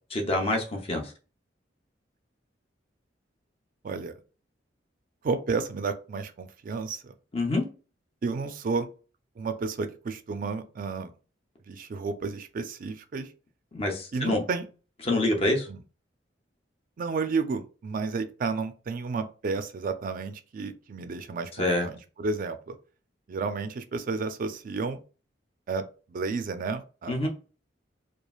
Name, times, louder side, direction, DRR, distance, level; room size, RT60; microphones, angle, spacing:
voice 1, 0.1-1.0 7.3-7.6 13.7-14.4 15.0-15.7 21.6-21.9 27.1-27.3, left 2 dB, 35° left, 0.6 m, -26 dB
voice 2, 3.8-4.1 5.2-7.1 8.2-8.9 9.4-11.1 11.7-13.3 14.1-14.7 15.7-15.8 17.0-22.8 23.3-25.0 25.7-25.8 26.1-27.3, right 4 dB, 50° right, 0.4 m, -32 dB
3.1 x 2.3 x 2.3 m
head